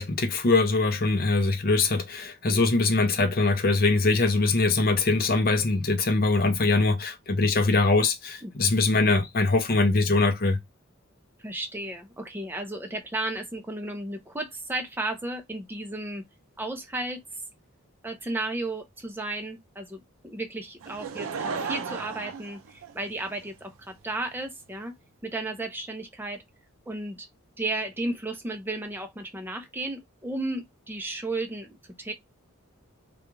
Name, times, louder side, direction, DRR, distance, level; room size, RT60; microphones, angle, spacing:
voice 1, 0.0-10.6, left 3 dB, 45° left, 0.6 m, -22 dB
voice 2, 8.4-8.7 11.4-16.2 16.6-17.2 18.0-24.9 25.2-26.4 26.9-27.3 27.6-32.1, right 2 dB, 10° right, 0.5 m, -34 dB
Laughter / Crowd, 20.8-23.4 24.1-24.2, right 5 dB, 70° right, 0.4 m, -34 dB
2.4 x 2.3 x 3.0 m
head